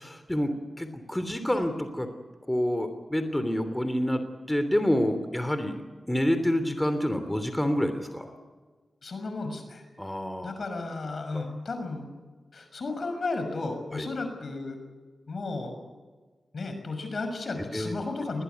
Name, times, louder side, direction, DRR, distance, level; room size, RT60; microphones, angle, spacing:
voice 1, 0.0-2.1 2.5-5.8 6.1-8.3 10.0-10.5 11.3-11.4 13.9-14.1 17.5-18.0, equal, 10° left, 9 dB, 3.1 m, -28 dB
voice 2, 9.0-9.8 10.4-12.1 12.5-14.8 15.3-15.9 16.5-18.4, left 3 dB, 65° left, 7 dB, 6.1 m, -34 dB
21.5 x 18.5 x 9.4 m, 1.4 s
cardioid pair, 50°, 0 cm